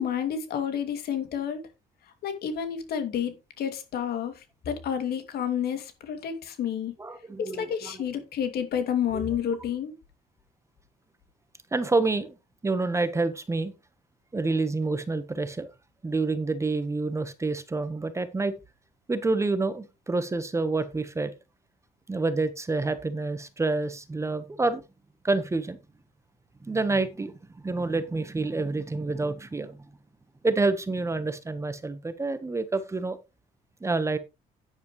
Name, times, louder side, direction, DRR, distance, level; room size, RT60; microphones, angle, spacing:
voice 1, 0.0-1.6 2.2-6.9 7.4-9.9, left 8 dB, 70° left, 2.5 m, -30 dB
voice 2, 7.0-8.0 9.1-9.2 11.7-12.3 12.6-13.7 14.3-15.7 16.0-18.5 19.1-21.3 22.1-24.8 25.2-25.8 26.6-29.8 30.4-33.2 33.8-34.2, right 3 dB, 15° right, 1.2 m, -28 dB
10.5 x 9.9 x 3.2 m
cardioid pair, 110°, 17 cm